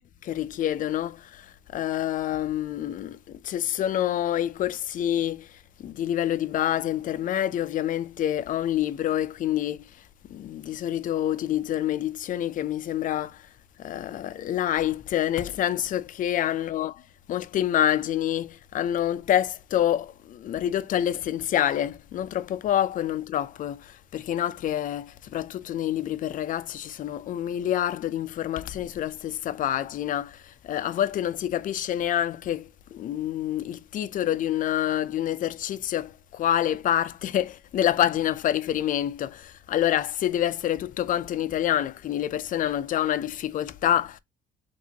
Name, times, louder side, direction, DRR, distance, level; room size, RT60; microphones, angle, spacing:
voice 1, 0.2-13.5 13.8-44.2, left 11 dB, 50° left, 0.5 m, -27 dB
5.6 x 2.7 x 2.8 m
cardioid pair, 110°, 17 cm